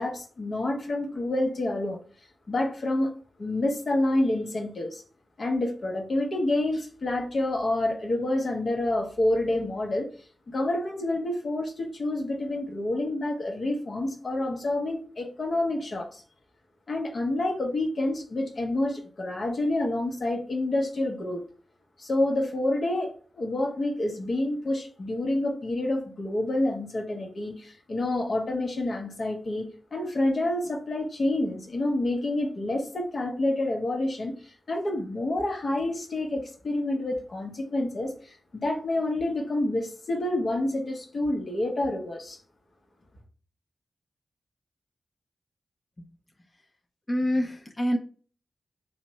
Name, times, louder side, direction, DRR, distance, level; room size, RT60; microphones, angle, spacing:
voice 1, 0.0-2.0 2.5-3.1 3.4-5.0 5.4-10.1 10.5-16.2 16.9-21.4 22.0-42.4, left 1 dB, 60° left, 0.9 m, -28 dB
voice 2, 47.1-48.0, equal, 30° left, 0.6 m, -26 dB
3.3 x 2.1 x 4.0 m
cardioid pair, 40°, 0 cm